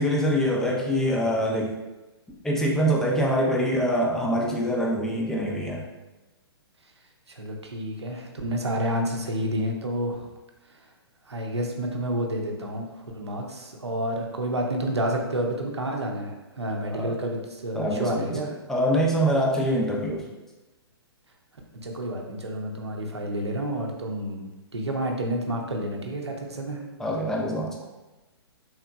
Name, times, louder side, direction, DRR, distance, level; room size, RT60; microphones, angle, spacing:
voice 1, 0.0-1.7 2.4-5.8 16.9-17.1 17.7-18.3 18.7-20.2 27.0-27.8, equal, 5° left, -3 dB, 0.4 m, -24 dB
voice 2, 7.3-10.2 11.3-18.5 21.8-24.5 24.7-26.8, right 1 dB, 90° right, 1 dB, 0.6 m, -29 dB
3.6 x 2.8 x 2.2 m, 1.1 s
figure-of-eight pair, 125°, 14 cm